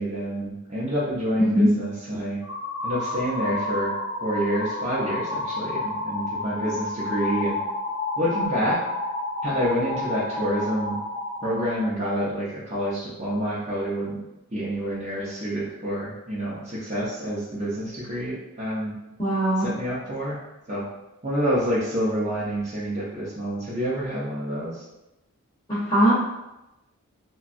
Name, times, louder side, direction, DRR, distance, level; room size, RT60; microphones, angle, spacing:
voice 1, 0.0-2.4 2.8-3.9 4.2-7.6 8.2-8.8 9.4-11.0 11.4-14.2 14.5-18.9 19.6-20.4 20.7-20.8 21.2-24.8, equal, 30° right, -7 dB, 0.7 m, -28 dB
voice 2, 1.4-1.7 19.2-19.7 25.7-26.1, equal, 20° left, -10 dB, 0.7 m, -20 dB
sound 1, 2.4-11.7, left 2 dB, 60° left, 0.6 m, -30 dB
2.8 x 2.2 x 2.5 m, 0.95 s
head